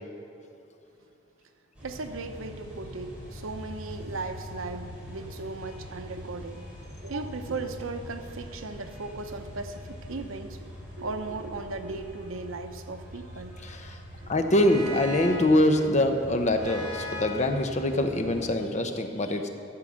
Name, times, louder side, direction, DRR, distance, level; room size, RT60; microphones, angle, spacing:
sound 1, 1.7-18.5, left 1 dB, 5° right, 3.3 m, -42 dB
voice 1, 1.8-6.6 7.0-13.6 14.1-14.3, right 3 dB, 85° right, 7 dB, 0.8 m, -37 dB
voice 2, 13.6-14.0 14.3-19.5, left 1 dB, 35° left, 6 dB, 0.8 m, -24 dB
12.5 x 7.5 x 6.2 m, 2.7 s
head